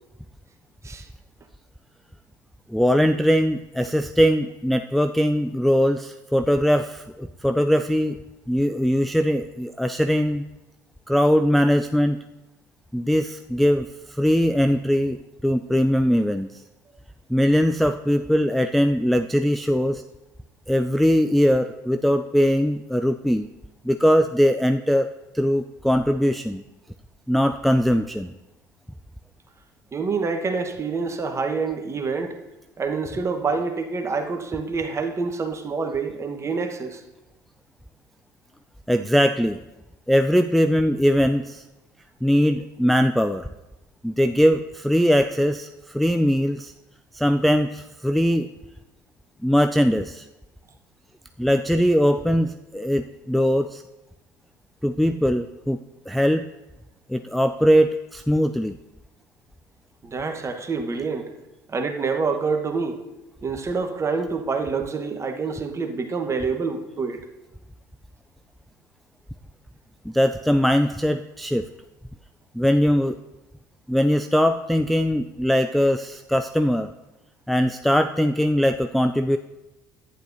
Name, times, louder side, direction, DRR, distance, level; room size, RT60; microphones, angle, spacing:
voice 1, 2.7-8.2 8.5-10.4 11.1-12.2 12.9-16.6 17.3-20.0 20.7-23.5 23.8-26.6 27.3-28.3 38.9-39.6 40.1-41.6 42.2-43.5 44.0-46.7 47.1-48.5 49.4-50.3 51.4-53.8 54.8-55.8 56.1-56.5 57.1-58.8 70.1-71.7 72.5-73.2 73.9-76.9 77.5-79.4, equal, ahead, 7 dB, 0.3 m, -21 dB
voice 2, 29.9-32.4 32.8-37.0 60.0-61.3 61.7-63.0 63.4-67.3, right 4 dB, 30° right, 5 dB, 1.1 m, -27 dB
11.5 x 9.6 x 2.6 m, 1.0 s
hypercardioid pair, 65°, 9 cm